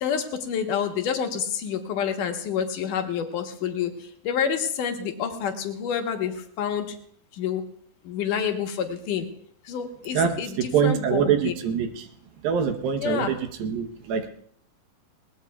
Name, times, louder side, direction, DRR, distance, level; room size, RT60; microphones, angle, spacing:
voice 1, 0.0-3.9 4.3-6.9 7.4-7.6 8.1-9.3 9.7-11.5 13.0-13.3, left 8 dB, 70° left, 4 dB, 2.6 m, -28 dB
voice 2, 10.1-12.1 12.4-14.3, right 7 dB, 80° right, 6 dB, 2.8 m, -24 dB
21.0 x 19.0 x 2.3 m, 0.62 s
omnidirectional pair, 4.2 m